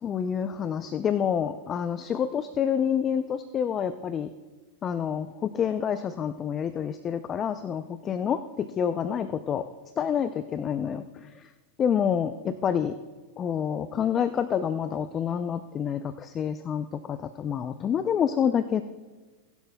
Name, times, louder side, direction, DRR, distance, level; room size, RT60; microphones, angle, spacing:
voice 1, 0.0-4.3 4.8-9.7 10.0-11.5 11.8-13.0 13.4-18.8, left 8 dB, 30° left, 11 dB, 0.5 m, -28 dB
20.0 x 11.5 x 2.3 m, 1.3 s
hypercardioid pair, 100°, 0 cm